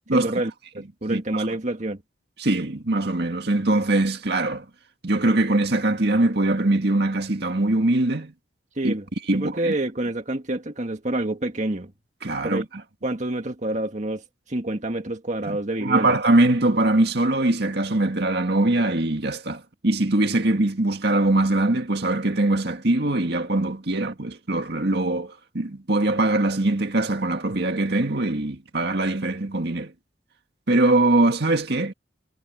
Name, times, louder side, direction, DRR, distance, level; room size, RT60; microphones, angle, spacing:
voice 1, 0.1-2.0 8.8-9.1 9.3-11.9 12.4-12.7 13.0-14.2 14.5-16.1, right 1 dB, 40° right, 1.9 m, -27 dB
voice 2, 1.1-1.5 2.4-4.7 5.0-8.3 8.8-8.9 9.3-9.7 12.2-12.8 15.5-29.9 30.7-31.9, right 2 dB, 60° right, 2.0 m, -22 dB
head